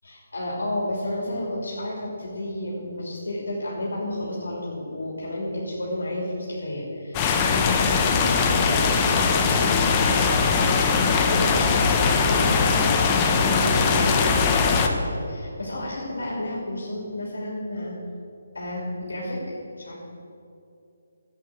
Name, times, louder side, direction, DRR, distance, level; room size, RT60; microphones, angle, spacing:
voice 1, 0.0-17.9 18.5-20.0, left 1 dB, 85° left, -4 dB, 3.1 m, -31 dB
sound 1, 7.1-14.9, left 5 dB, 20° left, 0.9 m, -21 dB
10.5 x 8.2 x 7.7 m, 2.7 s
figure-of-eight pair, 155°, 0 cm